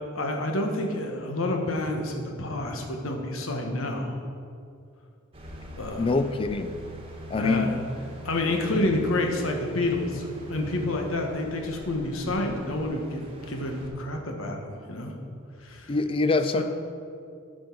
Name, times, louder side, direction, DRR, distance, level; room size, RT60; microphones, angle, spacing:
voice 1, 0.1-4.2 5.8-6.1 7.3-7.7 8.2-15.1 15.6-15.9 16.5-16.6, left 1 dB, 75° left, 2 dB, 1.2 m, -29 dB
sound 1, 5.3-13.9, right 1 dB, 30° right, 1.3 m, -43 dB
voice 2, 6.0-6.7 7.3-7.8 15.9-16.6, left 3 dB, 25° left, 10 dB, 0.4 m, -24 dB
8.8 x 5.2 x 6.0 m, 2.5 s
head